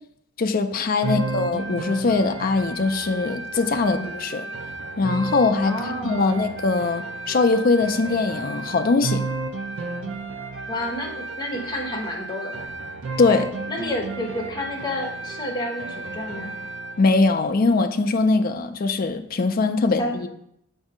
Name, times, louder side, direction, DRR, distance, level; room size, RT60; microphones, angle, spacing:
voice 1, 0.4-4.4 5.0-5.8 6.0-9.2 13.2-13.5 17.0-20.3, left 3 dB, 45° left, 7 dB, 0.4 m, -21 dB
sound 1, 1.0-17.1, right 3 dB, 70° right, 0.5 m, -32 dB
voice 2, 5.7-6.3 10.7-12.6 13.2-16.5 20.0-20.1, left 1 dB, 20° left, 0 dB, 0.9 m, -30 dB
7.2 x 2.7 x 4.9 m, 0.74 s
head